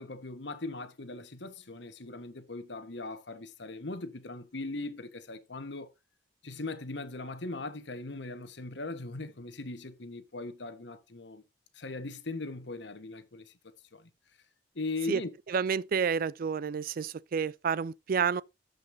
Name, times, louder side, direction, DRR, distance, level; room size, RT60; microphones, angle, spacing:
voice 1, 0.0-5.9 6.4-11.4 11.7-14.1 14.7-15.3, left 2 dB, 70° left, 1.2 m, -39 dB
voice 2, 15.5-18.4, right 6 dB, 50° right, 0.4 m, -29 dB
14.5 x 5.3 x 2.7 m
head